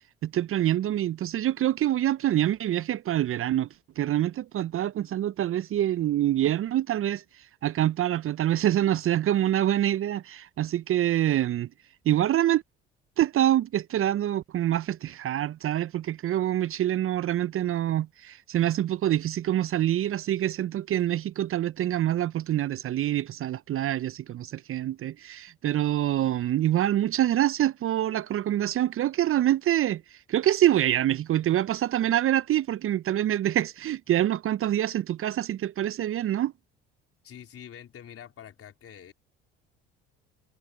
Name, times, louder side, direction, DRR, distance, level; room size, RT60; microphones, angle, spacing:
voice 1, 0.2-3.7 4.0-7.2 7.6-11.7 12.1-12.6 13.2-36.5, right 12 dB, 45° right, 0.7 m, -26 dB
voice 2, 37.2-39.1, left 9 dB, 45° left, 4.0 m, -46 dB
hypercardioid pair, 60°, 32 cm